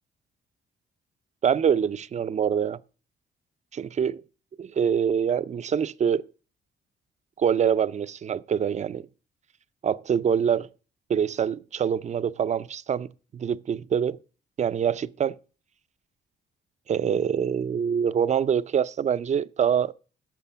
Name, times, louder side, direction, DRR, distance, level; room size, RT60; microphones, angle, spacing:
voice 1, 1.4-2.8 3.7-4.2 4.6-6.2 7.4-9.1 9.8-10.7 11.1-13.1 13.3-14.2 14.6-15.4 16.9-19.9, right 8 dB, 35° right, 0.4 m, -25 dB
12.0 x 6.8 x 5.6 m
cardioid pair, 90°, 20 cm